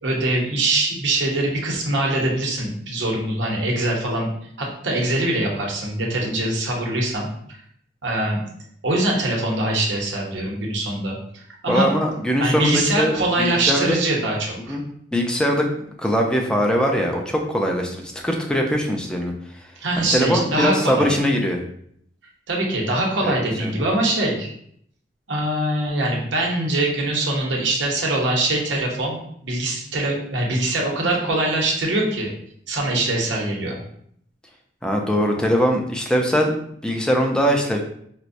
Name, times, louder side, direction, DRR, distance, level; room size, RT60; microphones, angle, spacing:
voice 1, 0.0-4.3 4.6-7.3 8.0-8.4 8.8-11.9 12.4-14.8 19.8-21.1 22.5-24.5 25.3-32.3 32.7-33.8, right 1 dB, 85° right, -2 dB, 0.8 m, -23 dB
voice 2, 11.7-14.0 14.7-14.8 15.1-15.7 16.0-19.3 20.1-21.6 23.2-23.3 23.6-23.8 34.8-36.5 36.8-37.8, equal, 5° left, 1 dB, 0.4 m, -21 dB
4.4 x 2.1 x 2.5 m, 0.67 s
head